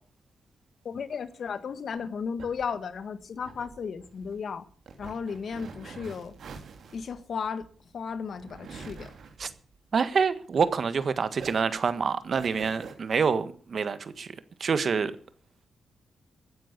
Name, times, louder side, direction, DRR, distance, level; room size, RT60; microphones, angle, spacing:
voice 1, 0.8-4.6 5.0-6.3 6.9-7.7 7.9-9.1, left 6 dB, 65° left, 1.6 m, -34 dB
sound 1, 2.0-11.0 11.3-12.9, right 5 dB, 75° right, 3.0 m, -46 dB
voice 2, 9.9-14.3 14.6-15.1, right 5 dB, 55° right, 1.6 m, -26 dB
15.0 x 9.8 x 8.3 m
cardioid pair, 90°, 0 cm